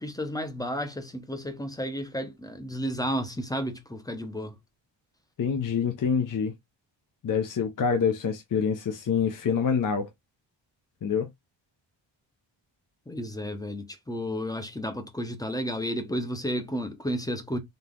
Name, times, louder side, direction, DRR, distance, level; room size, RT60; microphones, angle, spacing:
voice 1, 0.0-4.5 13.1-17.6, equal, 10° left, 0.7 m, -32 dB
voice 2, 5.4-6.5 7.2-10.1 11.0-11.3, left 6 dB, 40° left, 0.7 m, -26 dB
3.9 x 2.9 x 3.6 m
wide cardioid pair, 165°, 47 cm